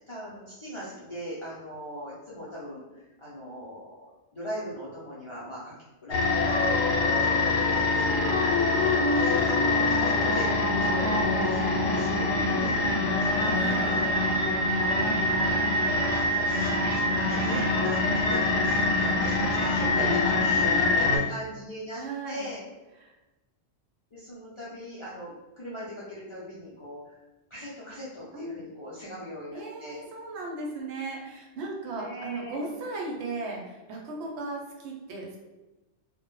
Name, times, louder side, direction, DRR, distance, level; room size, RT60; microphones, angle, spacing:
voice 1, 0.1-4.1 4.3-5.8 6.0-10.5 10.8-12.8 13.2-14.1 14.5-14.7 15.5-15.6 16.0-22.6 24.1-27.2 27.5-30.0 32.0-32.7, equal, 55° left, -9 dB, 0.3 m, -40 dB
sound 1, 6.1-21.2, left 2 dB, 80° left, 0.9 m, -24 dB
voice 2, 7.9-8.3 12.3-12.9 13.5-13.9 19.8-20.8 22.0-22.5 23.0-23.1 28.3-28.6 29.5-35.4, right 2 dB, 70° right, -1 dB, 0.8 m, -36 dB
2.1 x 2.0 x 2.9 m, 1.1 s
omnidirectional pair, 1.2 m